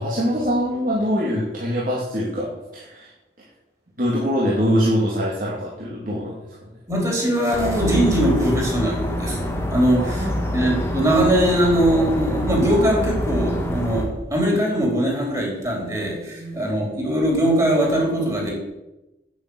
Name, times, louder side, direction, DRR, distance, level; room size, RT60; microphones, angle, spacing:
voice 1, 0.0-3.1 4.0-6.3 10.0-10.5 16.4-16.8, equal, 50° right, -5 dB, 2.7 m, -24 dB
voice 2, 6.9-18.5, right 1 dB, 20° right, -1 dB, 3.9 m, -21 dB
sound 1, 7.5-14.0, equal, 15° left, 1.7 m, -26 dB
9.5 x 8.8 x 8.1 m, 0.99 s
head